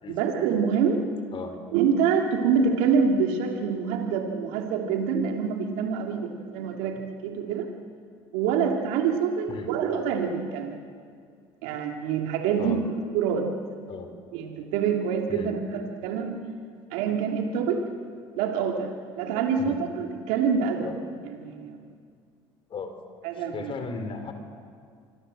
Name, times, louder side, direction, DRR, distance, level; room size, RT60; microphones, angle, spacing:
voice 1, 0.1-1.0 1.7-7.7 8.3-10.8 11.6-12.8 13.1-13.5 14.3-16.4 16.9-17.8 18.3-18.9 19.2-20.9 21.2-21.8 23.2-23.7, right 6 dB, 75° right, 2 dB, 2.7 m, -26 dB
voice 2, 23.5-24.3, left 4 dB, 45° left, 7 dB, 4.8 m, -35 dB
25.5 x 25.5 x 7.8 m, 2.2 s
hypercardioid pair, 75°, 12 cm